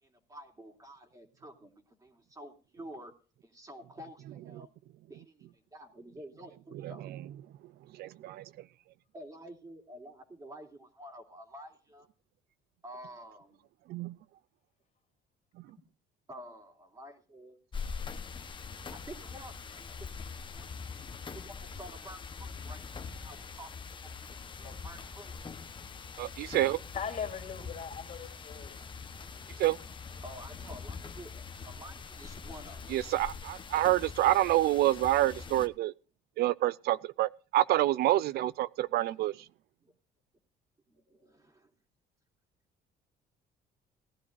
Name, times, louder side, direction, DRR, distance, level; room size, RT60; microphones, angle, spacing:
voice 1, 0.0-3.1 3.4-4.7 5.1-7.2 9.1-12.1 12.8-13.6 16.3-17.6 18.9-20.7 21.0-25.3 29.3-29.6 30.2-33.0 33.7-33.9 39.1-39.2 39.8-39.9 40.9-41.7, right 1 dB, 20° right, 2.9 m, -50 dB
voice 2, 7.9-8.5 13.9-14.1 26.2-26.8 29.6-29.8 32.9-35.9 36.4-39.3, right 15 dB, 70° right, 0.5 m, -27 dB
sound 1, 17.7-35.7, left 5 dB, 30° left, 1.0 m, -43 dB
voice 3, 26.9-28.8, left 7 dB, 45° left, 3.0 m, -39 dB
18.5 x 12.0 x 2.6 m
cardioid pair, 110°, 17 cm